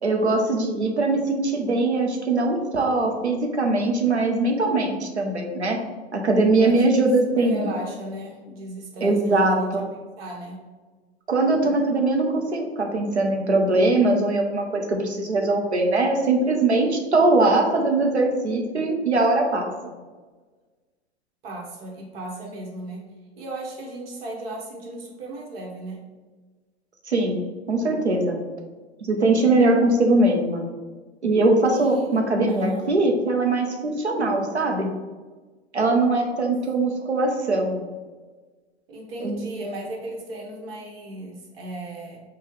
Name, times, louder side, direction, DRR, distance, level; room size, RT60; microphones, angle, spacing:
voice 1, 0.0-5.8 6.1-7.7 9.0-9.9 11.3-19.7 27.0-27.4 27.7-28.4 29.0-30.6 31.2-34.9 35.7-37.8 39.2-39.4, right 2 dB, 90° right, 2 dB, 0.7 m, -21 dB
voice 2, 7.4-9.8 10.2-10.6 21.4-26.0 31.6-32.9 38.9-42.2, right 1 dB, 65° right, -1 dB, 1.1 m, -36 dB
5.5 x 2.3 x 3.1 m, 1.4 s
figure-of-eight pair, 90°, 32 cm